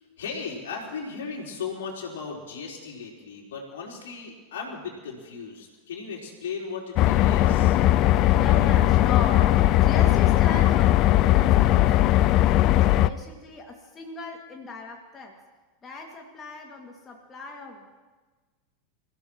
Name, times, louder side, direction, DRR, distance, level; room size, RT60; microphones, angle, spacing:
voice 1, 0.0-7.8, left 5 dB, 70° left, -1 dB, 4.1 m, -36 dB
sound 1, 7.0-13.1, left 14 dB, 45° left, 0.5 m, -19 dB
voice 2, 8.4-12.3 12.6-15.3 15.8-17.9, left 3 dB, 25° left, 0 dB, 2.3 m, -37 dB
27.5 x 15.5 x 3.1 m, 1.3 s
figure-of-eight pair, 85°, 0 cm